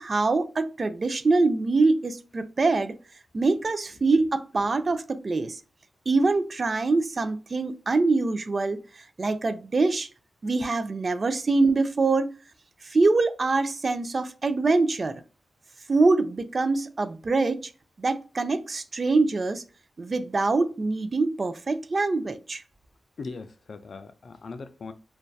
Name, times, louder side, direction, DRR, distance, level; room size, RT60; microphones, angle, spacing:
voice 1, 0.0-3.0 3.3-5.6 6.1-10.1 10.4-12.3 12.8-15.2 15.9-17.7 18.0-19.6 20.0-22.6, right 3 dB, 45° right, 0.3 m, -24 dB
voice 2, 23.2-24.9, left 4 dB, 60° left, 0.3 m, -39 dB
2.6 x 2.2 x 2.2 m
cardioid pair, 75°, 0 cm